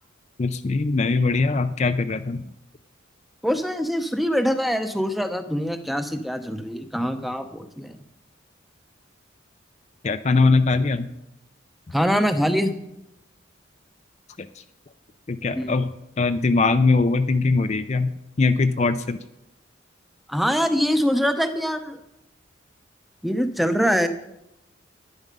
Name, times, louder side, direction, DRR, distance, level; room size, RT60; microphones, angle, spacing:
voice 1, 0.4-2.4 10.0-11.1 14.4-14.6 15.3-18.1 18.4-19.2, left 3 dB, 35° left, 9 dB, 0.4 m, -21 dB
voice 2, 3.4-8.0 11.9-12.8 15.5-15.8 20.3-22.0 23.2-24.1, equal, ahead, 8 dB, 0.7 m, -24 dB
11.0 x 10.5 x 5.3 m, 0.84 s
head